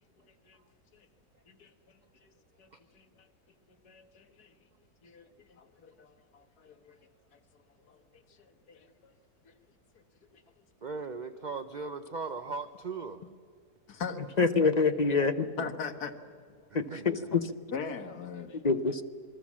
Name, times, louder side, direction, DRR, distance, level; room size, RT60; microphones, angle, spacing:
voice 1, 0.2-0.6 0.9-1.1 1.5-2.3 2.6-3.3 3.7-4.5 5.0-7.0 7.3-7.4 7.9-9.1 9.4-9.5 10.3-10.4 13.9-14.2 15.6-16.2 16.9-17.0 17.7-18.6, left 5 dB, 70° left, 1.9 m, -42 dB
voice 2, 10.8-13.2 15.0-15.1 16.7-17.5, right 4 dB, 45° right, 0.6 m, -39 dB
voice 3, 14.4-15.5 16.7-17.5 18.6-19.0, left 4 dB, 35° left, 0.7 m, -26 dB
27.0 x 22.0 x 7.4 m
omnidirectional pair, 1.7 m